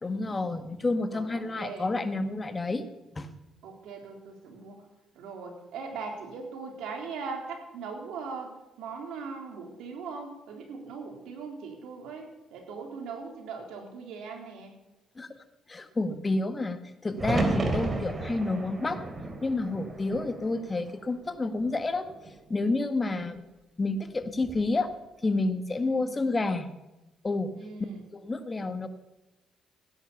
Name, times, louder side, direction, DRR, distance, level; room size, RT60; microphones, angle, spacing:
voice 1, 0.0-2.9 3.1-3.3 15.2-15.4 15.7-19.0 19.4-22.0 22.5-23.4 23.8-24.9 25.2-26.7 27.2-27.5 28.1-28.9, left 2 dB, 25° left, 9 dB, 1.6 m, -29 dB
voice 2, 1.1-1.9 3.6-4.9 5.1-8.5 8.8-14.7 17.7-17.8 23.0-23.3 25.8-26.1 27.5-28.0, right 5 dB, 80° right, 2 dB, 3.7 m, -40 dB
sound 1, 17.2-21.2 21.6-22.4 24.2-24.7, right 2 dB, 35° right, 3.1 m, -32 dB
16.0 x 10.5 x 7.1 m, 1.0 s
cardioid pair, 75°, 0 cm